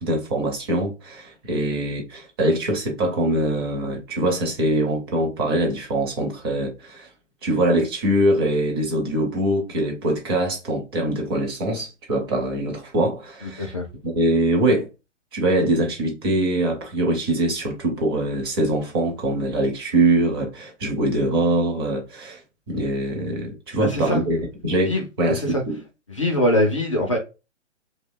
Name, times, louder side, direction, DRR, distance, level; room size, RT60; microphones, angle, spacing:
voice 1, 0.0-7.1 7.4-13.7 14.0-14.9 15.3-22.4 22.7-24.9 25.2-25.8, right 1 dB, 20° right, 0.6 m, -23 dB
voice 2, 13.4-13.9 23.8-24.2 24.9-25.6 26.1-27.2, left 1 dB, 25° left, 0.4 m, -23 dB
2.8 x 2.2 x 3.7 m
figure-of-eight pair, 130°, 37 cm